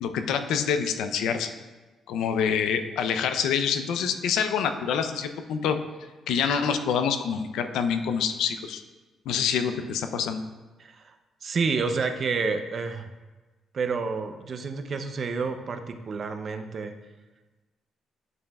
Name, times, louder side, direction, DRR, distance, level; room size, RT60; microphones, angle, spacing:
voice 1, 0.0-1.5 2.1-5.8 6.3-8.8 9.3-10.4, left 7 dB, 85° left, 8 dB, 0.5 m, -26 dB
voice 2, 10.8-11.1 11.4-13.1 13.7-16.9, right 4 dB, 50° right, 8 dB, 0.6 m, -29 dB
11.0 x 5.4 x 2.3 m, 1.2 s
cardioid pair, 90°, 0 cm